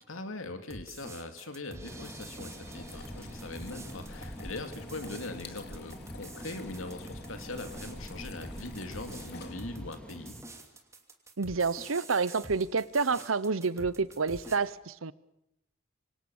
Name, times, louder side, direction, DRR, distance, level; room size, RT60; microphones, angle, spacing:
voice 1, 0.1-10.4, left 2 dB, 75° left, 2.6 m, -41 dB
sound 1, 0.7-14.6, right 2 dB, 15° right, 2.8 m, -47 dB
sound 2, 1.8-10.4, equal, 5° left, 2.3 m, -47 dB
sound 3, 2.4-10.0, left 2 dB, 55° left, 2.7 m, -47 dB
voice 2, 11.4-15.1, right 4 dB, 80° right, 0.9 m, -29 dB
26.0 x 25.0 x 7.2 m
head